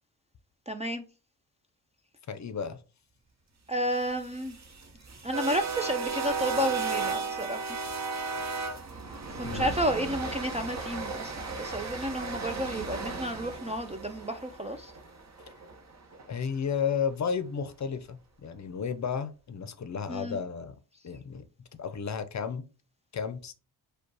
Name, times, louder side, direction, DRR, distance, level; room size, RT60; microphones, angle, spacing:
voice 1, 0.7-1.0 3.7-4.6 5.2-7.7 9.4-14.9 20.1-20.4, equal, 15° right, 0.3 m, -31 dB
voice 2, 2.3-2.8 9.4-9.7 16.3-20.7 21.0-21.4 21.8-22.6 23.1-23.5, left 6 dB, 45° left, 0.6 m, -33 dB
sound 1, 4.1-16.2, right 4 dB, 40° right, 0.9 m, -35 dB
5.1 x 2.3 x 4.6 m
wide cardioid pair, 125°, 41 cm